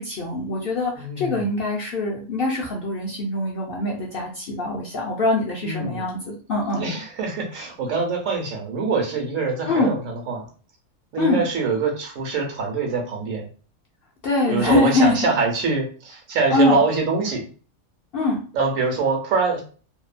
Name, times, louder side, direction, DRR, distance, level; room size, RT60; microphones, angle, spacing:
voice 1, 0.0-6.9 9.7-9.9 11.2-11.4 14.2-15.3 16.5-16.8 18.1-18.4, left 2 dB, 65° left, -2 dB, 0.6 m, -23 dB
voice 2, 1.0-1.4 5.6-6.1 6.8-10.5 11.1-13.5 14.5-17.4 18.5-19.6, right 4 dB, 75° right, 1 dB, 1.1 m, -24 dB
2.7 x 2.1 x 2.4 m, 0.38 s
omnidirectional pair, 1.4 m